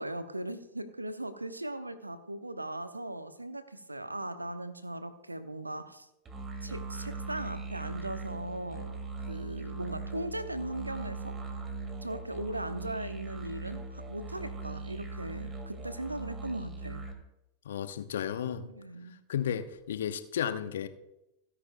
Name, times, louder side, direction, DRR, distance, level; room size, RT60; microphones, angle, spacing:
voice 1, 0.0-6.1 6.6-9.0 9.3-11.4 12.0-17.0 18.6-19.2, right 1 dB, 85° right, 12 dB, 0.9 m, -38 dB
sound 1, 6.3-17.1, right 3 dB, 25° right, 2.3 m, -40 dB
voice 2, 17.6-18.7 19.3-20.9, left 9 dB, 60° left, 11 dB, 0.9 m, -33 dB
29.5 x 10.0 x 2.2 m, 0.92 s
figure-of-eight pair, 90°, 0 cm